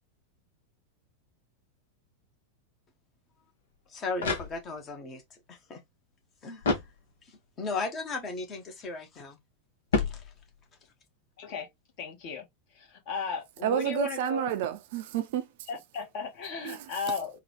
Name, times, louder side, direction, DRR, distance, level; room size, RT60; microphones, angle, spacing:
sound 1, 3.7-5.0 6.6-7.5 9.9-10.8, left 4 dB, 65° left, 1.0 m, -32 dB
voice 1, 3.9-5.8 6.4-6.8 7.2-9.4 10.0-10.2, left 3 dB, 30° left, 1.1 m, -37 dB
voice 2, 11.4-11.7 12.0-12.5 12.7-14.4 15.7-17.3, left 5 dB, 45° left, 1.5 m, -35 dB
voice 3, 13.6-15.5 16.6-16.8, right 10 dB, 50° right, 0.5 m, -30 dB
3.8 x 2.3 x 3.0 m
figure-of-eight pair, 90°, 0 cm